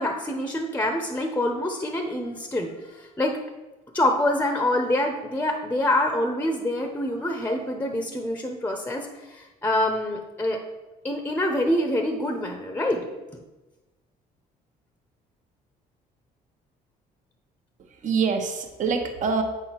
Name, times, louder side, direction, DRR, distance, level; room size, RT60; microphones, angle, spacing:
voice 1, 0.0-3.4 3.9-10.6 11.0-13.0, left 1 dB, 10° left, 4 dB, 0.8 m, -26 dB
voice 2, 17.8-19.4, right 5 dB, 50° right, 5 dB, 1.1 m, -25 dB
8.0 x 4.9 x 4.5 m, 1.1 s
cardioid pair, 110°, 17 cm